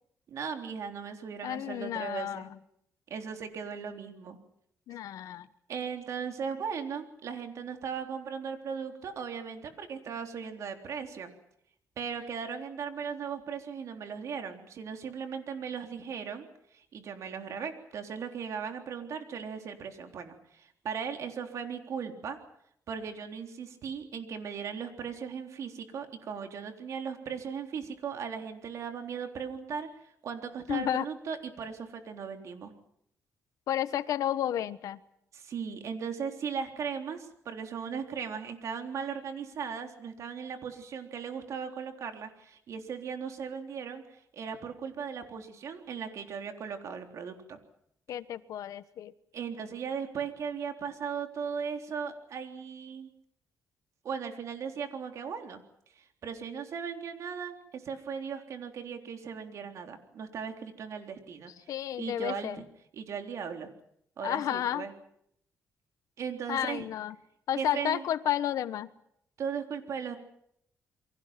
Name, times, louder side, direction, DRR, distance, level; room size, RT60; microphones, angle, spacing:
voice 1, 0.3-2.5 3.1-4.4 5.7-11.3 12.0-16.5 16.7-22.4 22.9-32.7 35.3-47.6 49.3-53.1 54.0-55.6 56.0-61.5 62.0-62.6 62.9-63.7 64.2-64.9 66.2-66.9 67.5-68.1 69.4-70.2, right 6 dB, 65° right, 5 dB, 3.6 m, -37 dB
voice 2, 1.4-2.6 4.9-5.5 30.7-31.0 33.7-35.0 48.1-49.1 61.7-62.6 64.2-64.9 66.5-67.2 67.5-68.9, left 11 dB, 80° left, 14 dB, 1.1 m, -31 dB
29.0 x 23.5 x 5.9 m, 0.73 s
cardioid pair, 125°, 6 cm